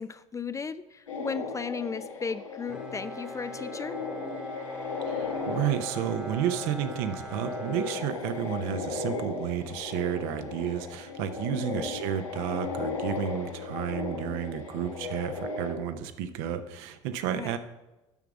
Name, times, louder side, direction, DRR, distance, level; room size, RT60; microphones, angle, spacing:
voice 1, 0.0-4.0 11.5-11.9 17.3-17.6, left 5 dB, 20° left, 14 dB, 0.4 m, -35 dB
sound 1, 1.1-15.7, left 4 dB, 85° left, 1.2 m, -36 dB
Bowed string instrument, 2.7-8.8, right 2 dB, 5° right, 1.1 m, -44 dB
voice 2, 5.1-17.6, right 9 dB, 65° right, 10 dB, 0.8 m, -31 dB
7.1 x 5.9 x 6.9 m, 1.0 s
figure-of-eight pair, 65°, 16 cm